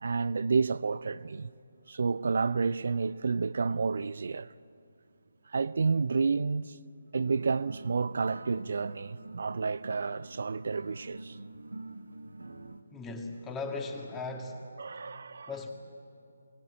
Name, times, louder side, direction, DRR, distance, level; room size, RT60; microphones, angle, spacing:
voice 1, 0.0-1.5 1.9-4.5 5.5-6.8 7.1-11.4 14.8-15.5, right 4 dB, 60° right, 0.5 m, -30 dB
sound 1, 7.2-12.8, right 2 dB, 80° right, 1.4 m, -46 dB
voice 2, 12.9-14.6 15.5-15.7, left 3 dB, 10° left, 2.1 m, -37 dB
23.5 x 19.0 x 8.9 m
figure-of-eight pair, 150°, 0 cm